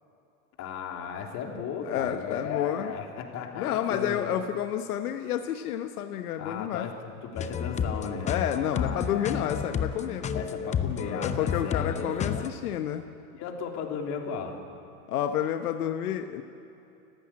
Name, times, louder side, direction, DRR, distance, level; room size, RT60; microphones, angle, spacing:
voice 1, 0.6-4.4 6.4-8.3 8.7-9.7 10.3-12.4 13.4-14.6, left 6 dB, 40° left, 2 dB, 3.3 m, -36 dB
voice 2, 1.8-2.9 3.4-6.9 8.2-10.4 11.0-13.1 15.1-16.4, left 10 dB, 80° left, 7 dB, 1.2 m, -30 dB
sound 1, 7.4-12.5, left 7 dB, 15° left, 0.8 m, -31 dB
30.0 x 15.0 x 8.7 m, 2.8 s
supercardioid pair, 135°, 44 cm